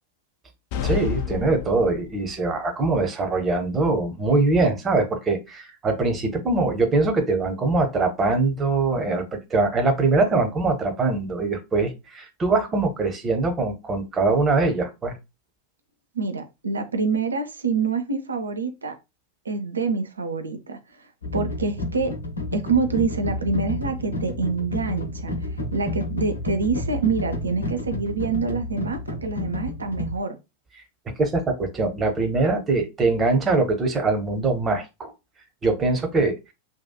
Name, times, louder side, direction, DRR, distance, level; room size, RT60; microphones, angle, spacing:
sound 1, 0.7-2.4, left 8 dB, 45° left, 0.3 m, -29 dB
voice 1, 0.8-15.2 31.2-35.1 35.6-36.4, right 3 dB, 20° right, 0.7 m, -22 dB
voice 2, 16.1-18.9 19.4-22.1 22.5-25.3 25.7-30.4, right 4 dB, 75° right, 0.4 m, -26 dB
sound 2, 21.2-30.2, left 1 dB, 75° left, 0.7 m, -30 dB
2.7 x 2.2 x 2.2 m
figure-of-eight pair, 90°, 0 cm